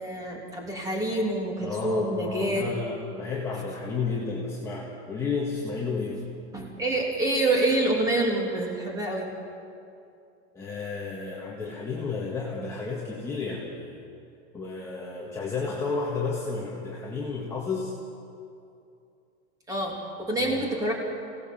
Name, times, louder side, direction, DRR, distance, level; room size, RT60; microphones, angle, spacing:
voice 1, 0.0-2.7 6.5-9.3 19.7-20.9, right 1 dB, 10° right, -1 dB, 3.0 m, -27 dB
voice 2, 1.6-6.2 10.5-14.0 14.5-17.9 20.4-20.6, left 4 dB, 10° left, -5 dB, 1.7 m, -32 dB
27.0 x 17.5 x 7.3 m, 2.6 s
supercardioid pair, 175°, 35 cm